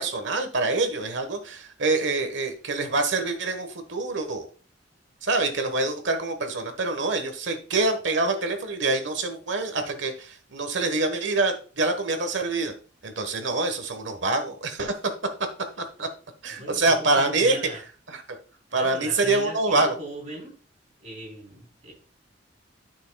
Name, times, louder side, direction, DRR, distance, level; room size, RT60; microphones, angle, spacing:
voice 1, 0.0-4.5 5.2-12.7 13.0-14.9 15.8-16.1 16.4-17.6 18.1-18.4 18.7-20.0, right 3 dB, 75° right, 7 dB, 1.3 m, -25 dB
voice 2, 16.5-17.8 18.7-20.5 21.0-21.9, right 1 dB, 40° right, -1 dB, 3.4 m, -39 dB
11.5 x 6.3 x 2.3 m, 0.39 s
head